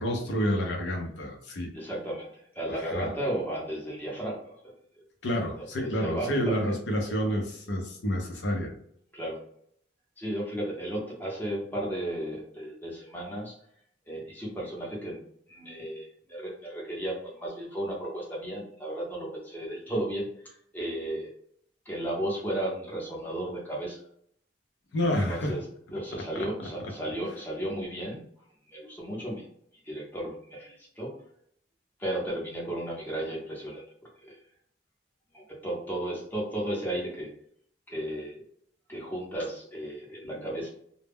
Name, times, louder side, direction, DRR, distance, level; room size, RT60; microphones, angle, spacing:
voice 1, 0.0-1.7 2.8-3.1 5.2-8.7 24.9-25.5 26.1-26.7 40.2-40.3, equal, 75° left, 1 dB, 0.6 m, -29 dB
voice 2, 1.7-4.7 5.6-6.8 9.1-9.4 10.2-13.6 14.1-15.2 15.5-21.3 21.9-24.0 25.3-25.6 25.9-28.2 28.7-29.5 29.8-31.2 32.0-33.8 34.2-34.4 35.3-37.3 37.9-38.4 38.9-40.7, right 1 dB, 10° left, -4 dB, 0.7 m, -34 dB
2.1 x 2.0 x 3.4 m, 0.67 s
head